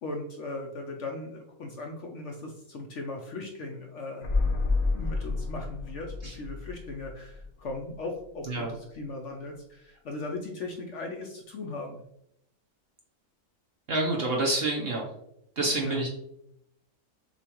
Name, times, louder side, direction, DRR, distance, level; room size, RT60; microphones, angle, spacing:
voice 1, 0.0-4.3 4.9-12.0 15.8-16.1, left 2 dB, 65° left, 2 dB, 0.8 m, -38 dB
sound 1, 4.2-8.0 8.2-8.3, left 3 dB, 80° left, 1.3 m, -30 dB
voice 2, 13.9-15.1 15.6-16.1, right 2 dB, 50° right, 0 dB, 0.8 m, -27 dB
6.8 x 2.4 x 3.0 m, 0.78 s
omnidirectional pair, 1.6 m